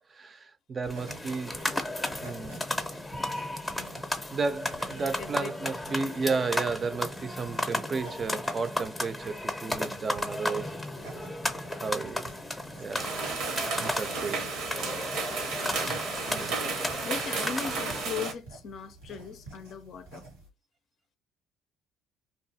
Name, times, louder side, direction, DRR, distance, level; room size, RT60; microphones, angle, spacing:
voice 1, 0.0-1.5 2.2-2.6 4.3-10.8 11.8-12.3 12.8-13.1 13.8-14.5 15.9-16.0 16.3-16.6, right 4 dB, 35° right, 0.5 m, -33 dB
sound 1, 0.8-18.2, left 1 dB, 10° left, 0.6 m, -34 dB
sound 2, 0.8-20.5, right 2 dB, 85° right, 1.1 m, -49 dB
voice 2, 5.2-5.8 14.1-14.5 14.8-15.7 17.0-20.3, left 6 dB, 55° left, 0.4 m, -40 dB
sound 3, 12.9-18.3, right 4 dB, 65° right, 0.7 m, -33 dB
2.5 x 2.4 x 2.7 m
hypercardioid pair, 60°, 0 cm